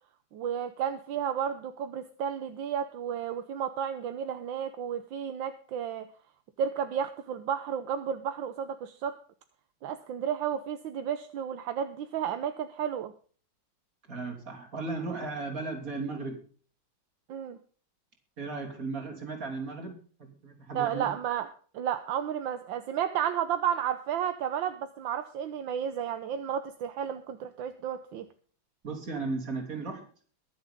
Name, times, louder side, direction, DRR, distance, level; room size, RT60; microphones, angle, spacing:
voice 1, 0.3-6.1 6.6-9.1 9.8-13.1 17.3-17.6 20.7-21.5 21.7-28.3, right 9 dB, 75° right, 9 dB, 1.6 m, -32 dB
voice 2, 14.1-16.4 18.4-21.1 28.8-30.1, right 3 dB, 45° right, 3 dB, 3.7 m, -36 dB
22.5 x 7.9 x 3.7 m, 0.42 s
omnidirectional pair, 2.1 m